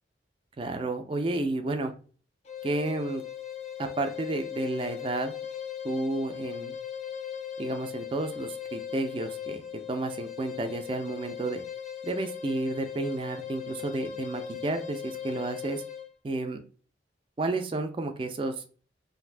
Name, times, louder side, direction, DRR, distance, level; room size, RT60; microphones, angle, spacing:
voice 1, 0.6-1.9 2.6-3.2 3.8-5.3 5.8-6.7 7.6-9.6 9.9-11.6 12.0-15.8 16.2-16.6 17.4-18.5, right 2 dB, 30° right, 6 dB, 0.3 m, -31 dB
sound 1, 2.5-16.1, left 9 dB, 40° left, 0.4 m, -38 dB
2.7 x 2.5 x 3.2 m, 0.40 s
head